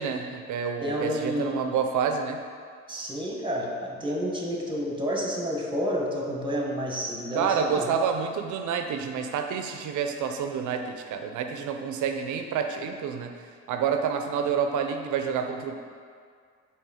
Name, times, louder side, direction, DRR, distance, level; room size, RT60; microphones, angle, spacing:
voice 1, 0.0-2.4 7.3-13.3 13.7-15.7, right 6 dB, 80° right, 6 dB, 0.6 m, -28 dB
voice 2, 0.8-1.7 2.9-7.9, equal, 15° right, -1 dB, 1.1 m, -30 dB
6.4 x 3.0 x 4.9 m, 2.1 s
cardioid pair, 90°, 30 cm